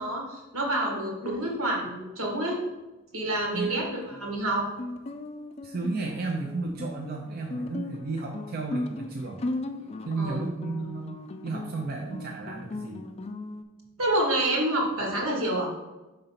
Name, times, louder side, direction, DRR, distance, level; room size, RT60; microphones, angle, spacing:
voice 1, 0.0-2.6 3.1-4.6 10.2-10.4 14.0-15.7, right 1 dB, 80° right, -1 dB, 1.8 m, -28 dB
Guitar, 3.6-13.6, left 2 dB, 30° left, 0.3 m, -37 dB
voice 2, 5.6-9.4 10.1-13.0, right 3 dB, 45° right, 0 dB, 0.6 m, -33 dB
5.2 x 3.9 x 5.7 m, 1.1 s
head